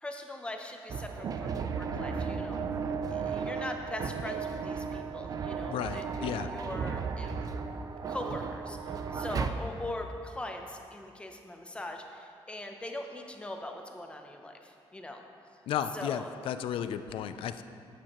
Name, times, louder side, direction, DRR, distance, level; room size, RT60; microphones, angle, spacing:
voice 1, 0.0-2.6 3.1-7.4 8.1-15.2 15.9-16.3, left 1 dB, 10° left, 3 dB, 0.6 m, -41 dB
sound 1, 0.9-9.5, right 5 dB, 40° right, 0.4 m, -35 dB
voice 2, 5.7-6.5 15.7-17.6, left 9 dB, 80° left, 11 dB, 0.4 m, -34 dB
11.5 x 8.8 x 3.0 m, 2.5 s
cardioid pair, 160°, 9 cm